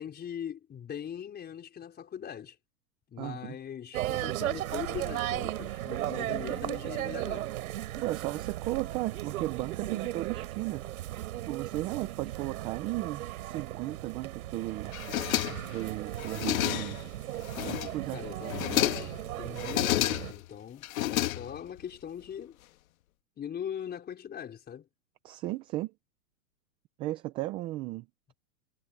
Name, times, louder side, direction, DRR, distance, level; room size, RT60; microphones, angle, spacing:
voice 1, 0.0-2.6 3.1-7.5 18.1-22.6 23.4-24.9, left 9 dB, 20° left, 5.0 m, -41 dB
voice 2, 3.2-3.6 8.0-10.8 11.4-14.9 15.7-17.0 17.6-18.2 25.2-25.9 27.0-28.1, right 17 dB, 15° right, 0.3 m, -35 dB
sound 1, 3.9-20.3, right 14 dB, 65° right, 3.6 m, -36 dB
sound 2, 14.9-15.8 16.2-17.1 17.4-18.1 18.4-19.2 19.6-20.4 20.8-21.8, left 15 dB, 60° left, 1.6 m, -30 dB
hypercardioid pair, 125°, 46 cm